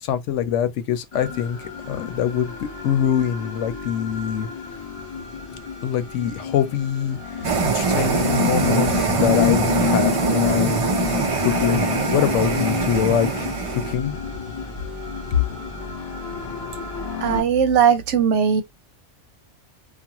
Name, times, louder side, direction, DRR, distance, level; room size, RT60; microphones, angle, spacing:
voice 1, 0.0-4.5 5.8-10.9 11.4-13.5 13.7-14.2, left 9 dB, 80° left, 0.9 m, -24 dB
sound 1, 1.1-17.4, left 9 dB, 45° left, 1.0 m, -29 dB
sound 2, 7.4-13.9, right 5 dB, 50° right, 0.4 m, -23 dB
voice 2, 17.2-18.6, right 7 dB, 80° right, 0.9 m, -18 dB
2.4 x 2.3 x 2.8 m
omnidirectional pair, 1.2 m